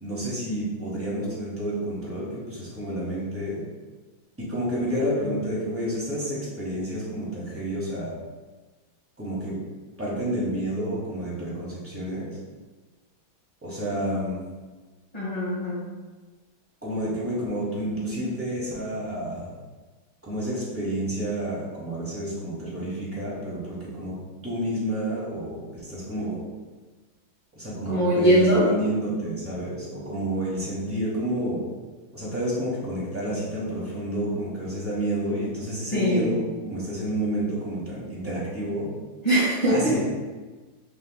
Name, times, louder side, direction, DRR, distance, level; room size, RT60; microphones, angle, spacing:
voice 1, 0.0-3.6 4.4-8.1 9.2-9.5 10.0-12.3 13.6-14.4 16.8-19.5 20.2-24.1 24.4-26.4 27.5-31.6 32.1-38.9 39.7-40.0, right 1 dB, 20° right, -8 dB, 0.4 m, -30 dB
voice 2, 15.1-15.8 27.8-28.7 35.9-36.3 39.2-40.0, right 1 dB, 20° left, -8 dB, 1.2 m, -21 dB
6.4 x 2.9 x 2.2 m, 1.3 s
omnidirectional pair, 2.4 m